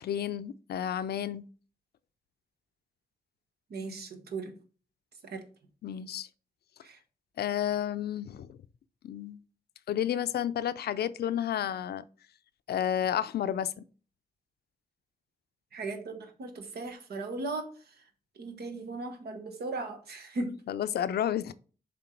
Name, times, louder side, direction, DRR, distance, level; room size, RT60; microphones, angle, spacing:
voice 1, 0.0-1.4 5.8-6.3 7.4-8.6 9.0-9.4 9.9-12.0 12.7-13.7 20.7-21.5, left 10 dB, 85° left, 0.4 m, -31 dB
voice 2, 3.7-4.5 5.2-5.4 6.8-7.0 15.7-17.7 18.4-20.6, right 3 dB, 90° right, 1.0 m, -37 dB
7.1 x 3.6 x 4.5 m
cardioid pair, 45°, 16 cm